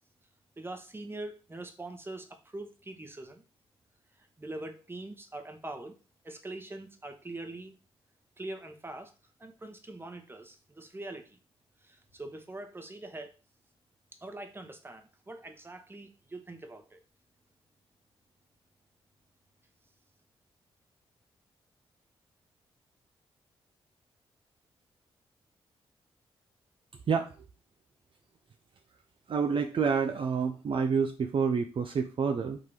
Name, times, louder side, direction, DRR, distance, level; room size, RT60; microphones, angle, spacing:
voice 1, 0.6-3.4 4.2-6.0 6.2-7.7 8.4-9.1 9.4-11.4 11.8-13.3 14.2-17.0, right 2 dB, 20° right, 5 dB, 1.1 m, -43 dB
voice 2, 29.3-32.6, right 6 dB, 55° right, 5 dB, 0.5 m, -28 dB
3.8 x 2.8 x 4.8 m, 0.34 s
supercardioid pair, 50°, 11 cm